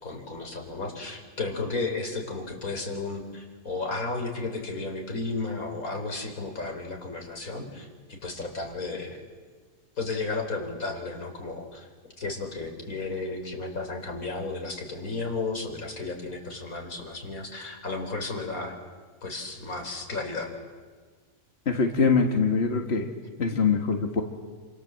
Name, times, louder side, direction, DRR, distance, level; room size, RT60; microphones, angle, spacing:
voice 1, 0.0-9.2 10.0-11.9 12.2-18.7 19.2-20.5, left 3 dB, 90° left, 3 dB, 4.7 m, -33 dB
voice 2, 21.7-23.1 23.4-24.2, left 5 dB, 50° left, 3 dB, 2.0 m, -23 dB
29.0 x 26.5 x 7.7 m, 1.5 s
omnidirectional pair, 1.4 m